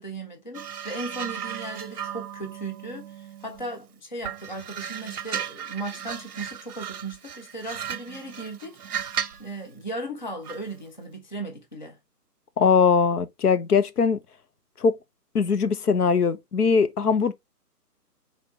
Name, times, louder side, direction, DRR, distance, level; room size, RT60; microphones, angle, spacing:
voice 1, 0.0-9.1 9.4-12.0, right 2 dB, 30° left, 0.6 m, -37 dB
sound 1, 0.5-3.8 4.2-9.5 10.5-10.7, right 9 dB, 65° right, 0.7 m, -35 dB
voice 2, 12.6-14.2 14.8-15.0 15.3-17.3, left 5 dB, 65° left, 0.7 m, -21 dB
4.0 x 3.5 x 3.4 m
hypercardioid pair, 165°, 49 cm